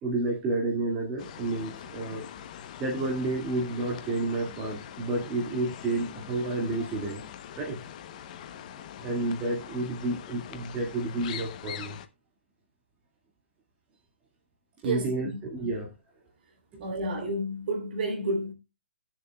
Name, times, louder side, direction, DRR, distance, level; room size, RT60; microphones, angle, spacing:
voice 1, 0.0-2.4 2.8-7.8 9.0-12.0 14.8-15.9 16.7-16.8, right 2 dB, 15° right, 2.0 m, -30 dB
sound 1, 1.2-12.1, left 10 dB, 35° left, 0.9 m, -43 dB
voice 2, 14.8-15.3 15.6-15.7 16.8-18.5, right 1 dB, 50° right, 3.4 m, -30 dB
19.0 x 7.1 x 2.3 m
hypercardioid pair, 160°, 7 cm